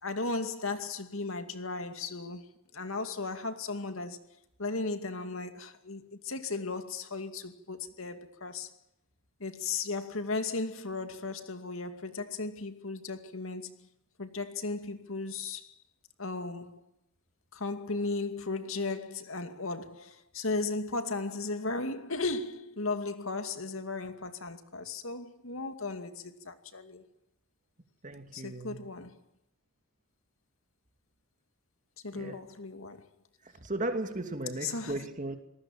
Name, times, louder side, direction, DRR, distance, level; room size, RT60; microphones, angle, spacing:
voice 1, 0.0-2.5 2.7-4.2 4.6-8.8 9.4-13.9 14.2-15.7 16.2-16.8 17.5-27.0 28.3-29.2 32.0-33.1 34.6-35.0, left 3 dB, 80° left, 2.4 m, -36 dB
voice 2, 28.0-28.9 32.1-32.4 33.4-35.4, right 2 dB, 40° right, 2.7 m, -36 dB
26.5 x 19.5 x 7.4 m
head